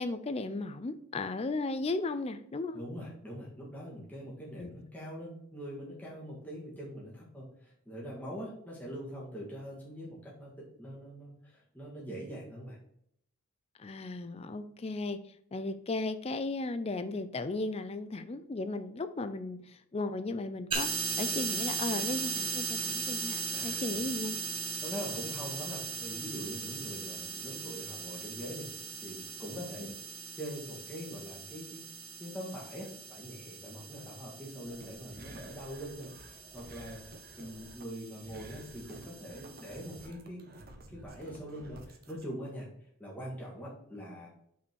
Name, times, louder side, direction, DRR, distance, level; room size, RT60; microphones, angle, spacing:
voice 1, 0.0-2.8 4.6-4.7 13.8-15.2 15.5-24.4 29.8-29.9, left 2 dB, 25° left, 11 dB, 0.4 m, -35 dB
voice 2, 2.7-12.8 23.5-23.9 24.8-28.7 29.0-29.9 30.4-31.8 32.2-37.0 37.4-40.4 40.9-42.7 43.0-44.3, equal, 5° left, -6 dB, 1.9 m, -43 dB
sound 1, 20.7-40.1, right 5 dB, 25° right, 1.1 m, -39 dB
sound 2, 34.7-42.2, right 2 dB, 45° right, 0.9 m, -52 dB
5.8 x 4.3 x 4.5 m, 0.70 s
head